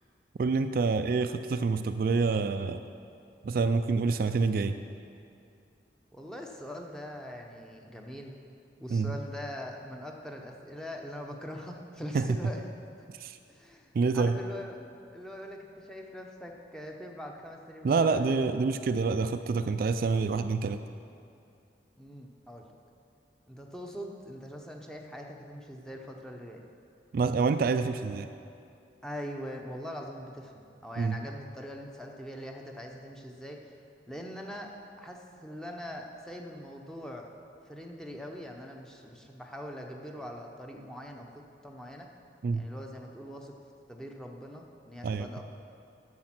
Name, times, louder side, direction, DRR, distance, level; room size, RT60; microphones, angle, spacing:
voice 1, 0.4-2.8 3.4-4.7 8.9-9.1 12.1-12.3 13.2-13.3 13.9-14.4 17.8-20.8 27.1-28.3 31.0-31.2 42.4-42.6 45.0-45.3, right 4 dB, 55° right, 9 dB, 0.3 m, -27 dB
voice 2, 6.1-8.4 8.8-12.6 13.5-14.8 15.1-18.2 22.0-22.6 23.5-26.6 29.0-33.7 34.1-34.7 35.0-37.3 37.7-42.1 42.5-43.6 43.9-45.4, equal, 5° left, 1 dB, 0.7 m, -42 dB
10.5 x 7.0 x 5.9 m, 2.5 s
head